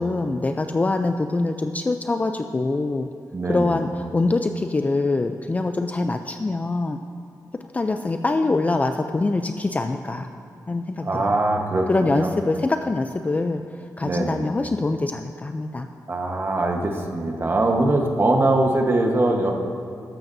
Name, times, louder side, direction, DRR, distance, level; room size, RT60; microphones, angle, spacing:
voice 1, 0.0-3.1 3.5-7.0 7.7-10.3 10.7-11.4 11.9-13.6 14.0-15.9, left 3 dB, 20° left, 6 dB, 0.3 m, -24 dB
voice 2, 3.3-3.8 11.0-12.3 14.0-14.5 16.1-19.5, right 2 dB, 35° right, 2 dB, 1.1 m, -22 dB
13.5 x 12.0 x 2.7 m, 2.4 s
wide cardioid pair, 125°, 7 cm